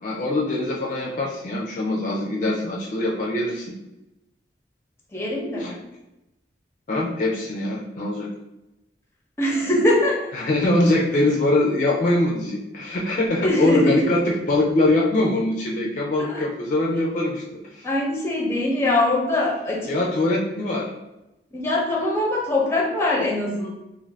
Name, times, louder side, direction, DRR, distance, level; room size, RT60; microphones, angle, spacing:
voice 1, 0.0-3.7 5.6-5.7 6.9-8.3 10.3-17.9 19.9-20.9, left 2 dB, 45° left, -2 dB, 0.4 m, -23 dB
voice 2, 5.1-5.8 9.4-10.3 13.2-14.0 16.2-16.4 17.8-20.0 21.5-23.7, left 1 dB, 15° left, -3 dB, 0.7 m, -22 dB
2.5 x 2.5 x 3.2 m, 0.94 s
head